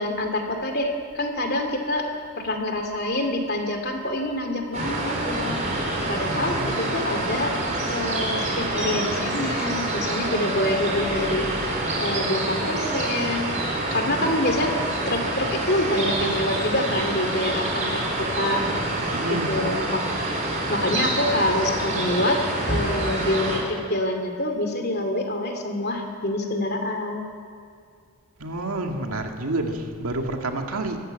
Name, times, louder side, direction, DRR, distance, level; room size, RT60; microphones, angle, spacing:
voice 1, 0.0-2.1 2.4-5.7 6.1-7.5 7.9-13.6 13.9-14.7 15.1-18.6 19.3-20.0 20.4-22.4 22.7-27.3, left 1 dB, 45° left, 4 dB, 2.7 m, -26 dB
sound 1, 4.7-23.6, right 2 dB, 35° right, 4.5 m, -27 dB
voice 2, 6.3-6.8 19.1-19.6 28.4-31.0, right 2 dB, 80° right, 3 dB, 2.1 m, -29 dB
24.0 x 13.5 x 8.9 m, 2.2 s
head